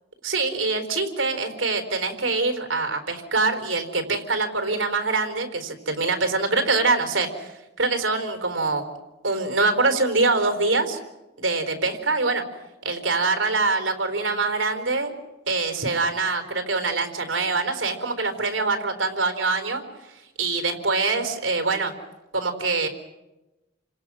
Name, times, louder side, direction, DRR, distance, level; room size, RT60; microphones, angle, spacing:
voice 1, 0.2-8.8 9.2-11.0 11.4-12.4 12.8-15.1 15.5-19.8 20.4-21.9 22.3-22.9, right 3 dB, 80° right, 6 dB, 4.2 m, -24 dB
29.5 x 26.5 x 6.3 m, 1.0 s
head